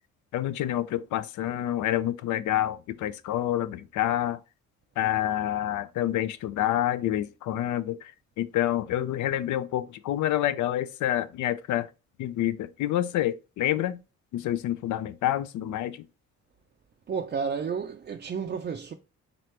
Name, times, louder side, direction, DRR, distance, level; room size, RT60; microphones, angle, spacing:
voice 1, 0.3-4.4 5.0-8.1 8.4-11.9 12.2-14.0 14.3-16.0, left 12 dB, 75° left, 0.5 m, -28 dB
voice 2, 17.1-18.9, right 6 dB, 35° right, 0.4 m, -31 dB
4.0 x 3.1 x 3.2 m
cardioid pair, 90°, 30 cm